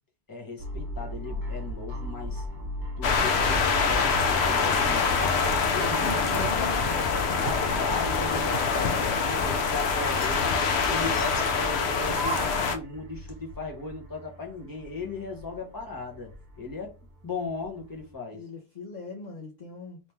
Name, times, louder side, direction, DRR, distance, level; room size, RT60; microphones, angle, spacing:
voice 1, 0.3-2.4 3.0-5.4 5.7-6.7 7.3-10.6 10.9-16.9 17.2-18.4, left 3 dB, 20° left, 1.0 m, -37 dB
sound 1, 0.6-18.1, equal, 50° right, 0.8 m, -39 dB
sound 2, 3.0-12.8, left 5 dB, 80° left, 0.8 m, -25 dB
voice 2, 5.7-7.1 18.3-20.0, left 3 dB, 50° left, 0.8 m, -38 dB
sound 3, 5.9-7.0 7.4-7.7 8.2-8.7 9.1-9.6 10.0-10.4 10.9-11.4 12.1-12.7, right 5 dB, 85° right, 0.9 m, -38 dB
3.1 x 2.9 x 3.3 m
omnidirectional pair, 1.1 m